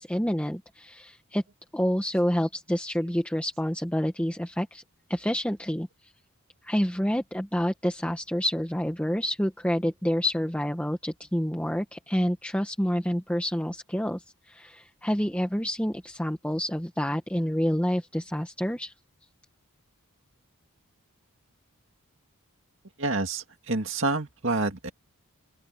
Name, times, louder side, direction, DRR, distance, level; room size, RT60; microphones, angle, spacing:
voice 1, 0.0-1.4 1.7-4.8 5.1-6.1 6.6-18.9, equal, 5° left, 1.2 m, -28 dB
voice 2, 23.0-24.9, right 3 dB, 55° right, 2.3 m, -28 dB
open air
head